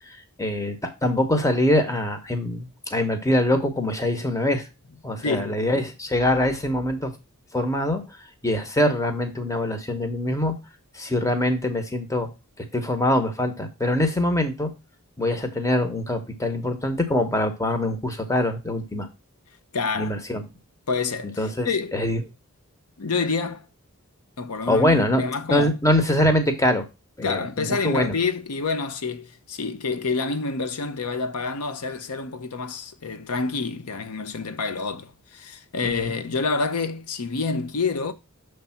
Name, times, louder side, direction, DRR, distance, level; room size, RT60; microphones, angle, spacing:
voice 1, 0.1-4.7 5.0-7.1 7.5-8.0 8.4-10.5 10.9-12.3 12.6-14.7 15.2-19.1 19.9-20.4 21.4-22.2 24.7-25.2 25.5-26.8 27.2-28.1 35.8-36.1, left 1 dB, 15° left, 1.0 m, -23 dB
voice 2, 5.2-5.6 19.7-20.2 20.9-21.4 21.6-22.0 23.0-23.6 24.4-25.8 27.2-38.1, left 4 dB, 80° left, 0.7 m, -28 dB
6.7 x 3.3 x 5.7 m
head